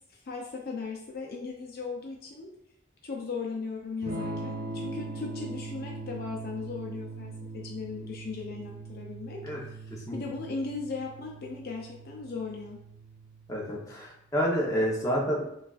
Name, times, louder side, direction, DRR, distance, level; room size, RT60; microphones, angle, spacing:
voice 1, 0.1-2.5 3.0-9.4 9.7-12.8, left 4 dB, 50° left, -1 dB, 0.5 m, -37 dB
Electric guitar / Strum, 4.0-13.8, right 2 dB, 45° right, 0.7 m, -40 dB
voice 2, 13.5-15.4, equal, 15° left, -3 dB, 0.9 m, -28 dB
6.2 x 2.4 x 2.4 m, 0.76 s
head